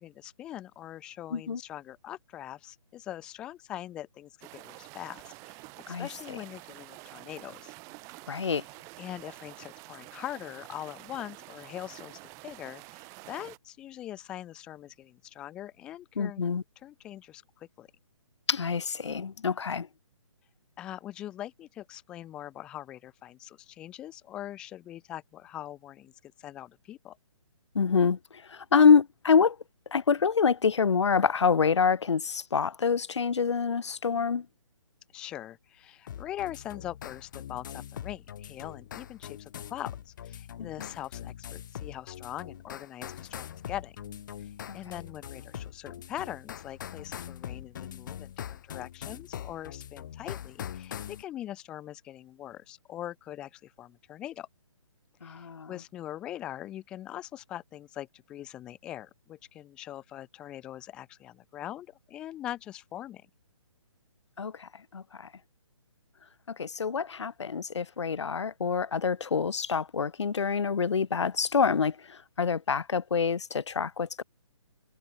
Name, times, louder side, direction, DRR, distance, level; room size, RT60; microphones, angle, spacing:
voice 1, 0.0-5.6 5.9-7.7 9.0-16.4 16.8-17.9 20.8-27.2 35.1-39.9 40.2-43.9 44.4-54.5 55.2-63.2, left 12 dB, 5° left, 0.3 m, -42 dB
voice 2, 1.3-1.6 5.9-6.1 8.3-8.6 16.2-16.6 18.5-19.9 27.7-29.6 29.9-34.5 40.6-40.9 44.7-44.8 55.2-55.7 64.4-65.3 66.5-74.2, left 6 dB, 60° left, 0.7 m, -26 dB
sound 1, 4.4-13.6, right 28 dB, 20° right, 1.7 m, -48 dB
sound 2, 36.1-51.2, left 10 dB, 35° left, 2.0 m, -42 dB
figure-of-eight pair, 140°, 17 cm